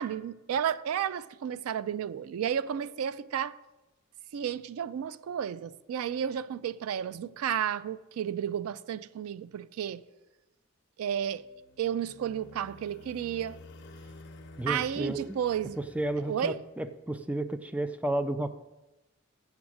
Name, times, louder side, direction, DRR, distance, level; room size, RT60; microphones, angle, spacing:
voice 1, 0.0-3.5 4.3-10.0 11.0-11.4 11.8-13.6 14.7-15.8 16.3-16.6, right 9 dB, 85° right, 0.3 m, -32 dB
sound 1, 11.3-17.1, left 2 dB, 55° left, 0.7 m, -51 dB
voice 2, 14.6-15.4 15.8-18.5, right 1 dB, 5° right, 0.3 m, -32 dB
7.2 x 7.0 x 6.3 m
head